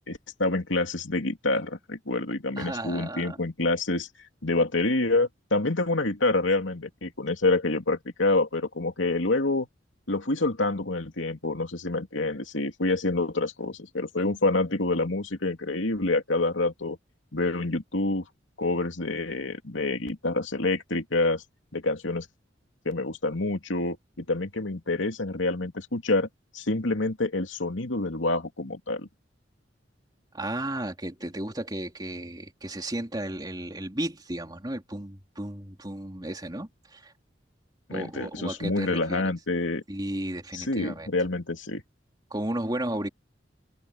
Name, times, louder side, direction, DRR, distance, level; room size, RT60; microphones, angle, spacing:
voice 1, 0.1-4.1 4.4-9.7 10.1-17.0 17.3-18.2 18.6-21.4 21.7-22.3 22.8-26.3 26.5-29.1 37.9-39.8 40.5-41.8, left 2 dB, 90° left, 2.7 m, -27 dB
voice 2, 2.6-3.4 30.3-37.1 37.9-39.3 39.9-41.1 42.3-43.1, right 1 dB, 20° right, 3.0 m, -34 dB
head